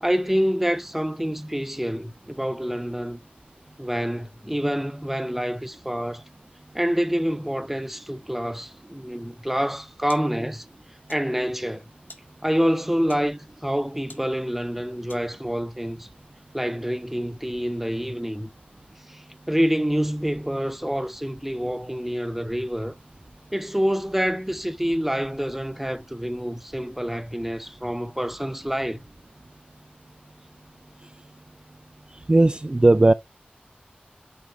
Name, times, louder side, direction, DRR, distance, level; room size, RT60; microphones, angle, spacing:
voice 1, 0.0-3.2 3.8-6.2 6.7-10.6 11.1-11.8 12.4-16.1 16.5-18.5 19.1-23.0 23.5-29.1, equal, 5° right, 0.7 m, -27 dB
sound 1, 9.5-15.6, left 2 dB, 70° left, 1.8 m, -53 dB
voice 2, 32.3-33.1, right 2 dB, 30° right, 0.3 m, -16 dB
6.2 x 5.2 x 4.0 m
cardioid pair, 40°, 3 cm